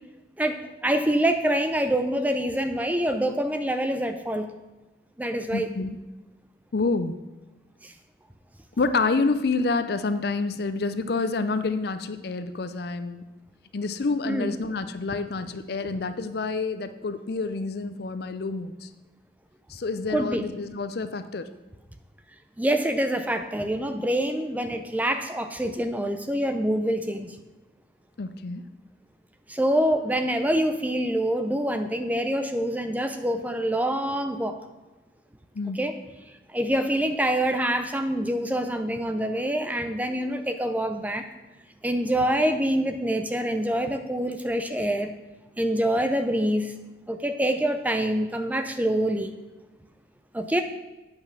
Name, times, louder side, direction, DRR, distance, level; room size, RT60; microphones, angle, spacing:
voice 1, 0.4-4.5 5.2-5.7 7.8-7.9 14.3-14.6 20.1-20.5 22.6-27.4 29.5-34.6 35.7-36.0 36.5-41.2 41.8-45.1 45.6-46.8 47.1-49.3 50.3-50.6, right 1 dB, 10° right, 7 dB, 0.5 m, -26 dB
voice 2, 5.5-6.0 6.7-7.2 8.8-13.2 13.7-18.9 19.7-21.5 28.2-28.6 35.5-35.8, left 3 dB, 55° left, 10 dB, 0.5 m, -28 dB
8.8 x 5.7 x 5.8 m, 1.1 s
head